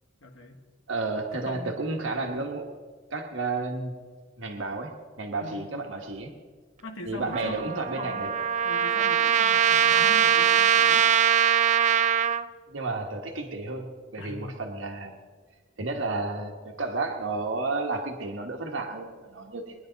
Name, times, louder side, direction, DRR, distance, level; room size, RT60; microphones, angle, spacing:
voice 1, 0.2-0.6 1.3-1.8 5.4-5.8 6.8-8.4 8.6-11.1 14.2-14.6, left 1 dB, 90° left, 4 dB, 1.7 m, -41 dB
voice 2, 0.9-2.7 3.1-3.9 4.4-4.9 5.2-6.3 7.0-8.3 12.7-15.2 15.8-19.7, right 3 dB, 80° right, 2 dB, 1.4 m, -32 dB
Trumpet, 7.3-12.4, right 9 dB, 40° right, 0.4 m, -22 dB
21.5 x 10.0 x 4.0 m, 1.5 s
head